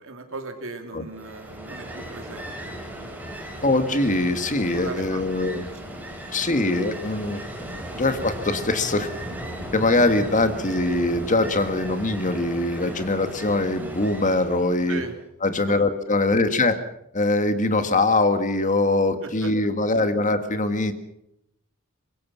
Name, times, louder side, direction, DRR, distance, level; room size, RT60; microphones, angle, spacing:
voice 1, 0.0-2.8 4.7-5.2 5.5-6.0 7.2-7.4 14.9-15.1 15.5-15.8 19.2-19.5, right 3 dB, 65° right, 4 dB, 3.4 m, -38 dB
Ocean, 1.1-15.2, equal, 10° right, 5.0 m, -36 dB
voice 2, 3.6-5.7 6.3-7.4 8.0-9.1 9.7-15.0 15.4-16.8 17.1-20.9, left 2 dB, 35° left, 9 dB, 1.8 m, -22 dB
24.5 x 21.0 x 5.8 m, 0.79 s
head